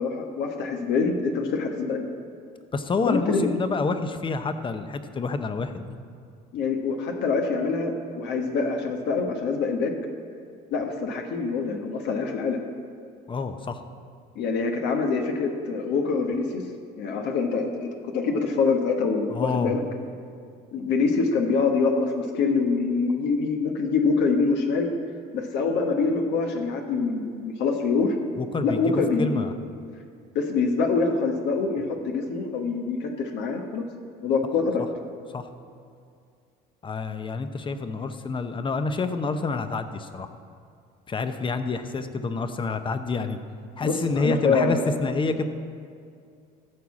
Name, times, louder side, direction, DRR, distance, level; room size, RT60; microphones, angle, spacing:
voice 1, 0.0-2.1 3.0-3.5 6.5-9.9 10.7-12.6 14.3-16.6 17.0-19.8 20.7-24.9 25.3-28.2 28.6-29.4 30.3-33.8 34.2-34.8 43.8-44.9, left 4 dB, 70° left, 3 dB, 1.2 m, -25 dB
voice 2, 2.7-6.0 13.3-13.8 19.3-19.8 28.4-29.5 35.3-35.5 36.8-40.3 41.1-43.4 43.8-45.5, left 4 dB, 25° left, 9 dB, 0.8 m, -28 dB
14.0 x 4.7 x 7.1 m, 2.3 s
supercardioid pair, 90°, 19 cm